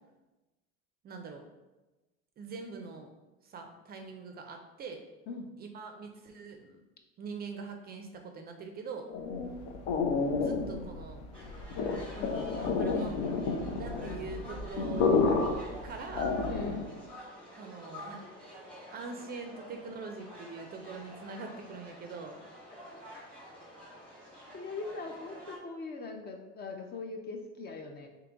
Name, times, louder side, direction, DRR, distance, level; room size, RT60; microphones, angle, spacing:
voice 1, 1.0-1.5 2.4-3.1 3.4-5.0 5.6-6.8 7.2-9.1 10.3-11.2 12.8-13.3 13.8-15.2 15.8-16.3 17.6-22.4, right 4 dB, 30° right, 5 dB, 0.4 m, -43 dB
sound 1, 9.1-16.9, left 4 dB, 85° left, 0.7 m, -30 dB
sound 2, 11.3-25.6, left 1 dB, 5° left, 1.0 m, -48 dB
voice 2, 11.7-14.2 16.5-16.9 22.8-22.9 24.5-28.1, left 3 dB, 30° left, 4 dB, 0.4 m, -41 dB
3.7 x 2.9 x 3.5 m, 1.1 s
supercardioid pair, 120°, 32 cm